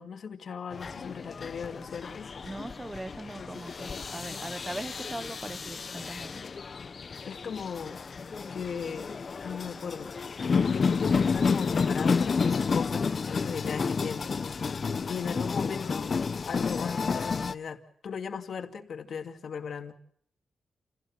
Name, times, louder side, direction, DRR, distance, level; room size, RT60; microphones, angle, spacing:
voice 1, 0.0-2.3 7.2-8.0 8.5-10.2 10.4-14.3 15.1-16.1 16.4-19.9, left 6 dB, 55° left, 4 dB, 2.5 m, -37 dB
sound 1, 0.7-17.5, left 5 dB, 40° left, 0.9 m, -31 dB
voice 2, 2.4-6.3, right 1 dB, 10° right, 15 dB, 0.9 m, -40 dB
29.5 x 17.0 x 7.5 m, 0.65 s
wide cardioid pair, 150°, 0 cm